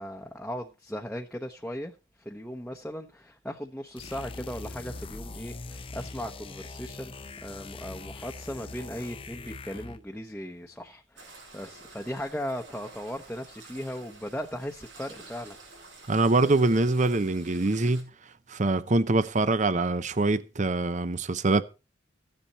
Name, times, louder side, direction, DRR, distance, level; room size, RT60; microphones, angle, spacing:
voice 1, 0.0-7.1 7.4-15.6, equal, 5° left, 0.9 m, -37 dB
sound 1, 4.0-10.1, left 3 dB, 30° left, 0.6 m, -42 dB
sound 2, 11.2-18.0, right 3 dB, 90° right, 7.0 m, -49 dB
voice 2, 16.1-18.1 18.5-21.6, right 2 dB, 40° right, 0.7 m, -24 dB
15.0 x 10.5 x 4.2 m
head